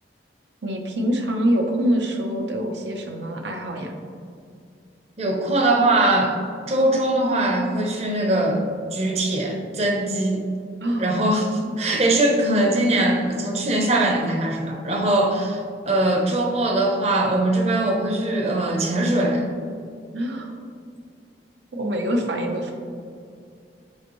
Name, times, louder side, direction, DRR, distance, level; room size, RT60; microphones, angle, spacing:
voice 1, 0.6-3.9 10.8-11.2 20.1-20.5 21.7-22.8, equal, 80° right, 3 dB, 0.8 m, -25 dB
voice 2, 5.2-6.3 6.7-10.5 11.0-19.5, right 1 dB, 35° right, 1 dB, 0.8 m, -21 dB
8.7 x 4.4 x 3.1 m, 2.4 s
head